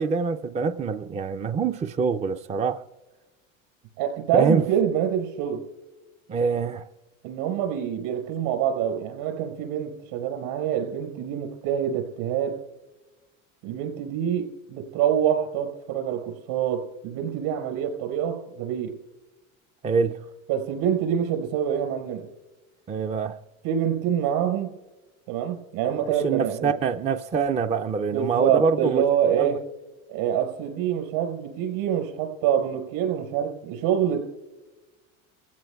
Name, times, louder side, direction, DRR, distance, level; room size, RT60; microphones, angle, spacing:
voice 1, 0.0-2.8 4.3-4.6 6.3-6.9 19.8-20.2 22.9-23.4 26.0-29.0 29.4-29.5, right 5 dB, 15° right, 0.4 m, -25 dB
voice 2, 4.0-5.6 7.2-12.6 13.6-18.9 20.5-22.3 23.6-24.7 25.3-26.7 28.1-29.6 30.1-34.2, right 9 dB, 70° right, 4.7 m, -26 dB
29.5 x 16.0 x 2.3 m
hypercardioid pair, 90°, 41 cm